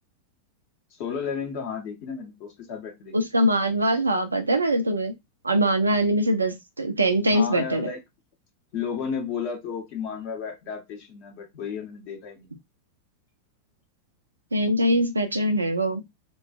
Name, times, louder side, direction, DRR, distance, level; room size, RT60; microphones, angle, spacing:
voice 1, 0.9-3.1 7.3-8.0 8.7-12.5, left 6 dB, 45° left, 1.2 m, -33 dB
voice 2, 3.1-5.1 5.4-7.8 14.5-16.0, right 1 dB, 80° right, 0.5 m, -22 dB
3.0 x 2.5 x 2.3 m
figure-of-eight pair, 90°, 0 cm